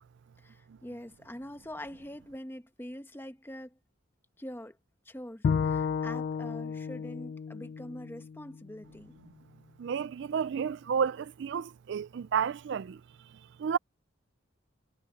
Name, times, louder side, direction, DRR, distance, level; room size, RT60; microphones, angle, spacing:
voice 1, 0.4-3.8 4.4-4.8 5.0-9.1, left 1 dB, 10° left, 1.1 m, -44 dB
Bowed string instrument, 5.4-8.7, left 6 dB, 50° left, 0.3 m, -32 dB
voice 2, 9.8-13.0 13.6-13.8, right 7 dB, 60° right, 0.4 m, -31 dB
head